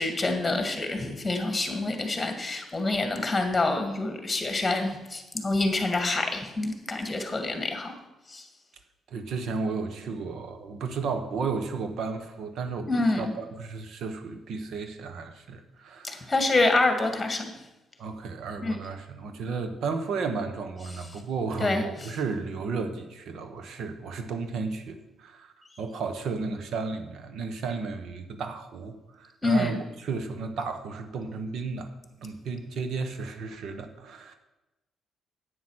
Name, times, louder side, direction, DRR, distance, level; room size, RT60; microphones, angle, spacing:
voice 1, 0.0-7.9 8.3-8.4 12.9-13.3 16.0-17.4 18.6-18.8 21.6-21.8 29.4-29.8, left 2 dB, 20° left, 5 dB, 2.1 m, -26 dB
voice 2, 9.1-16.3 18.0-31.9 32.2-34.3, right 4 dB, 70° right, 8 dB, 1.3 m, -33 dB
9.7 x 8.3 x 6.4 m, 1.0 s
cardioid pair, 90°, 0 cm